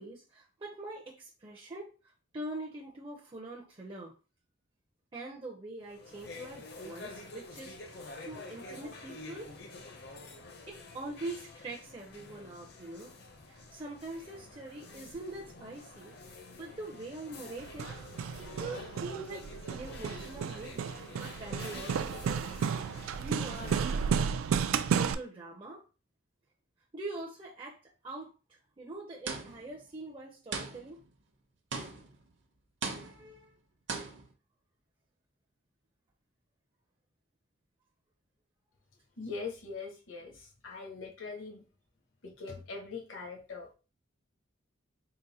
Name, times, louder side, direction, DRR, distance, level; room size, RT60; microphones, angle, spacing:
voice 1, 0.0-1.9 2.3-4.1 5.1-9.5 10.7-13.1 13.5-16.1 16.5-17.9 18.4-23.9 24.7-25.8 26.9-27.8 28.0-31.0 32.9-33.5, right 2 dB, 25° right, -2 dB, 0.5 m, -44 dB
sound 1, 5.8-24.3, left 2 dB, 50° left, 0.6 m, -48 dB
Hammer, 17.6-25.1, right 7 dB, 85° right, 0.3 m, -33 dB
sound 2, 29.3-29.8 30.5-31.1 31.7-32.2 32.8-33.4 33.9-34.3, right 4 dB, 60° right, 0.7 m, -38 dB
voice 2, 39.2-41.6 42.2-43.7, left 4 dB, 75° left, 0 dB, 1.1 m, -42 dB
3.9 x 2.1 x 4.1 m, 0.33 s
head